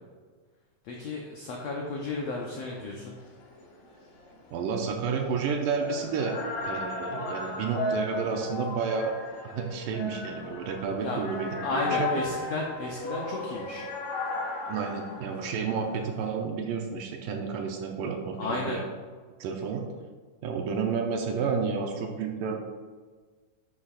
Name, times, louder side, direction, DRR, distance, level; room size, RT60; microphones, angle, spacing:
voice 1, 0.8-3.2 11.0-11.3 11.6-13.9 18.4-18.8, left 3 dB, 80° left, -1 dB, 1.5 m, -33 dB
sound 1, 2.0-16.3, left 3 dB, 60° left, 1.8 m, -36 dB
voice 2, 4.5-9.2 9.4-12.2 14.7-18.8 19.4-19.8 20.4-22.6, right 5 dB, 75° right, 2 dB, 2.1 m, -31 dB
10.5 x 7.4 x 2.4 m, 1.5 s
omnidirectional pair, 4.2 m